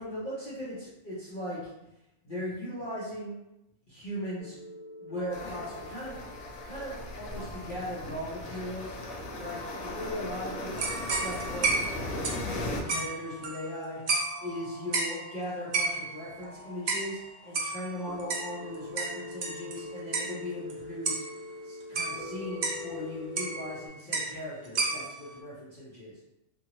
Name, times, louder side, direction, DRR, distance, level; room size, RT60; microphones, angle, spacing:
voice 1, 0.0-1.7 2.2-3.3 3.9-4.6 5.0-6.2 6.6-9.0 9.3-14.0 14.4-21.2 21.6-26.2, left 1 dB, 45° left, -10 dB, 0.9 m, -38 dB
sound 1, 4.4-23.9, left 2 dB, 5° right, 0.7 m, -46 dB
sound 2, 5.3-12.8, left 2 dB, 90° left, 1.1 m, -38 dB
sound 3, 10.8-13.8 14.1-14.5 14.9-15.2 15.7-16.2 16.9-17.1 17.5-19.8 20.1-20.3 20.7-20.8 21.0-21.3 21.9-22.8 23.4-23.8 24.1-24.3 24.6-25.2, right 4 dB, 65° right, 0.4 m, -31 dB
2.8 x 2.7 x 2.8 m, 0.90 s
omnidirectional pair, 1.4 m